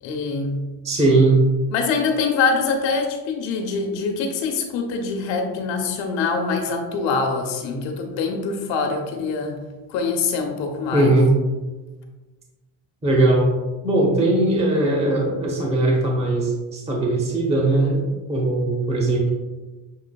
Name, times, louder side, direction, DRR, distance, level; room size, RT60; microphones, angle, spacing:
voice 1, 0.0-0.7 1.7-9.6 9.9-11.1, left 4 dB, 80° left, 3 dB, 1.0 m, -24 dB
voice 2, 0.8-1.4 10.9-11.3 13.0-13.5 13.8-18.0 18.3-19.3, right 2 dB, 15° right, -2 dB, 0.8 m, -19 dB
6.4 x 3.2 x 2.3 m, 1.2 s
cardioid pair, 95°, 45 cm